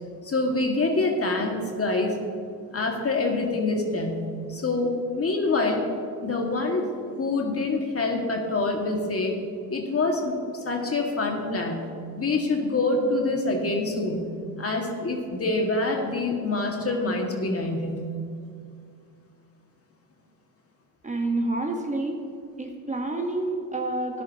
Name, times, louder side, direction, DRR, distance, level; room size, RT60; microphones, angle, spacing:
voice 1, 0.2-2.1 2.7-5.8 6.2-9.4 9.7-14.3 14.6-18.1, left 2 dB, 35° left, 1 dB, 2.0 m, -26 dB
voice 2, 21.0-22.2 22.6-24.2, right 2 dB, 20° right, 2 dB, 1.2 m, -28 dB
14.0 x 10.5 x 2.9 m, 2.3 s
supercardioid pair, 65°, 40 cm